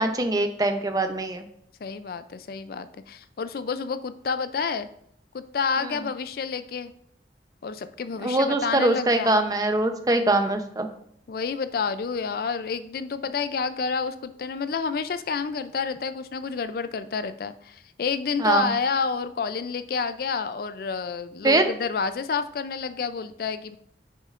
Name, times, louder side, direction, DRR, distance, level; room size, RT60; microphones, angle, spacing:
voice 1, 0.0-1.5 5.8-5.9 8.2-10.9 18.4-18.7 21.4-21.6, right 2 dB, 20° right, 7 dB, 0.6 m, -23 dB
voice 2, 1.8-4.9 5.3-6.9 7.6-9.4 10.1-10.2 11.3-23.8, left 5 dB, 55° left, 12 dB, 0.4 m, -29 dB
9.7 x 6.4 x 2.5 m, 0.69 s
head